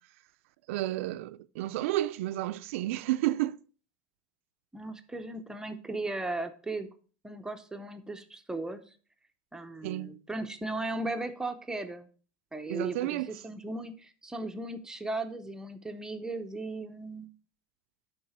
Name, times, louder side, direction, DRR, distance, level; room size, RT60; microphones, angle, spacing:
voice 1, 0.7-3.6 9.8-10.1 12.7-13.3, right 15 dB, 85° right, 0.4 m, -31 dB
voice 2, 4.7-6.9 7.2-8.8 9.5-12.1 12.5-17.3, right 2 dB, 10° right, 0.7 m, -37 dB
10.5 x 4.0 x 4.2 m
supercardioid pair, 125°, 7 cm